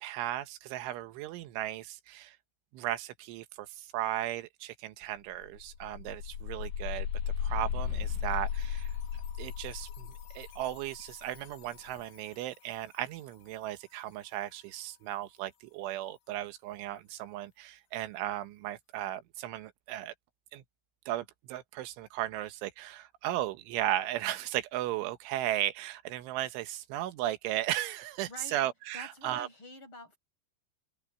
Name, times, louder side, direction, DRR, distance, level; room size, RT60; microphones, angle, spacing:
voice 1, 0.0-2.4 2.7-7.1 7.4-8.9 9.4-20.1 20.5-20.6 21.1-29.5, right 13 dB, 80° right, 3.6 m, -36 dB
sound 1, 5.0-5.1 5.4-12.2, left 8 dB, 80° left, 5.0 m, -36 dB
voice 2, 28.3-28.6 28.9-30.2, left 1 dB, 25° left, 6.8 m, -47 dB
open air
omnidirectional pair, 5.5 m